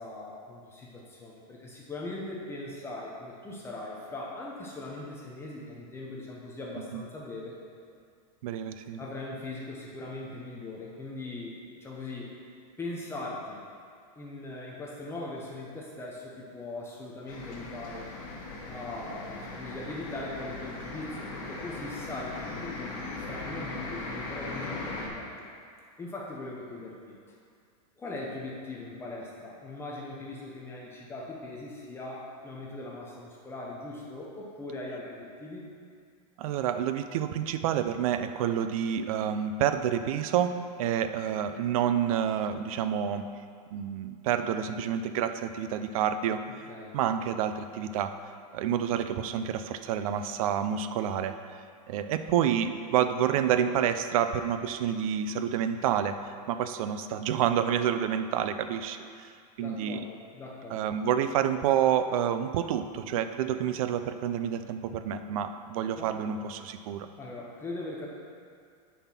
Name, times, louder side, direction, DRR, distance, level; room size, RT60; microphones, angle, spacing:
voice 1, 0.0-7.5 9.0-12.4 12.8-13.6 14.2-18.1 18.7-23.0 23.3-25.4 26.0-27.2 28.0-35.7 46.5-47.0 59.6-60.9 66.0-66.4 67.2-68.1, left 2 dB, 10° left, -3 dB, 0.8 m, -40 dB
voice 2, 8.4-9.0 36.4-43.3 43.7-46.4 46.9-48.1 48.5-51.3 51.9-59.3 59.6-60.0 60.7-67.1, right 9 dB, 60° right, 10 dB, 0.5 m, -28 dB
sound 1, 17.3-25.1, left 3 dB, 55° left, 2.1 m, -39 dB
9.0 x 4.4 x 5.7 m, 2.2 s
supercardioid pair, 160°, 20 cm